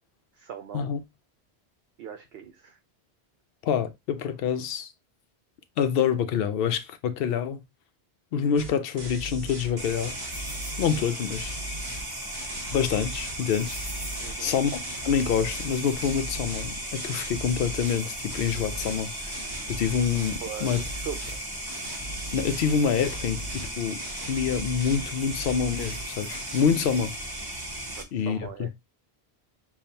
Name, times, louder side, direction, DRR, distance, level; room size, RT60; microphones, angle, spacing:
voice 1, 0.3-0.9 2.0-2.8 14.2-14.5 20.4-21.4 28.0-28.7, right 8 dB, 70° right, 0.8 m, -40 dB
voice 2, 3.6-4.9 5.8-7.6 8.3-10.1 10.8-11.6 12.7-13.8 14.4-19.4 19.7-20.8 22.3-24.0 24.3-27.1 28.1-28.7, left 7 dB, 65° left, 0.7 m, -26 dB
sound 1, 8.6-8.7 9.0-9.7 10.0-12.0 12.3-13.4 13.6-14.4 14.7-15.7 16.0-18.0 18.3-19.0 19.3-20.4 20.6-21.4 21.7-22.7 23.0-23.7 24.0-25.1 25.3-26.0 26.3-26.7, right 1 dB, 40° right, 1.7 m, -38 dB
sound 2, 9.8-28.0, right 1 dB, 25° right, 0.8 m, -36 dB
6.8 x 2.4 x 2.7 m
omnidirectional pair, 1.1 m